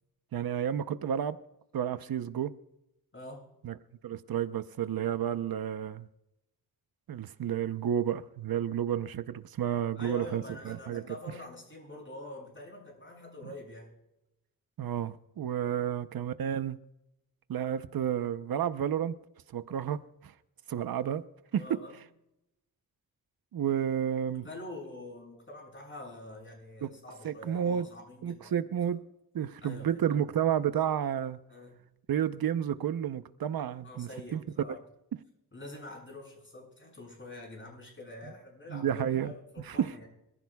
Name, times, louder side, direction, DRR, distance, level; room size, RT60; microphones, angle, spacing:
voice 1, 0.3-1.4 1.7-2.5 3.6-3.7 4.0-6.1 7.1-11.0 14.8-16.8 17.5-19.1 19.5-20.3 20.7-21.2 21.5-21.6 23.5-24.5 26.8-26.9 27.2-27.9 28.2-29.0 29.3-31.4 32.1-34.4 38.7-39.3 39.7-39.9, right 9 dB, 80° right, 0.8 m, -31 dB
voice 2, 10.0-13.9 15.6-15.9 21.5-22.0 24.3-28.6 29.6-30.0 31.5-31.8 33.8-34.8 35.5-40.1, left 2 dB, 35° left, 7.1 m, -46 dB
26.5 x 15.0 x 2.3 m
wide cardioid pair, 100°, 35 cm